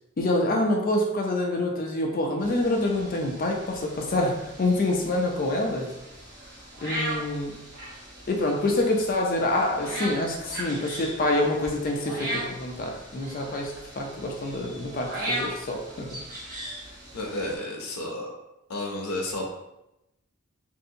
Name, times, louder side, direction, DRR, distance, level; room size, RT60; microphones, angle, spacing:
voice 1, 0.2-5.9 6.8-7.5 8.3-16.1, left 1 dB, 40° left, 1 dB, 0.4 m, -26 dB
sound 1, 2.4-17.6, right 1 dB, 40° right, 1.1 m, -38 dB
voice 2, 17.1-18.3 18.7-19.5, left 1 dB, 85° left, 0 dB, 0.6 m, -31 dB
3.2 x 2.7 x 2.7 m, 0.90 s
head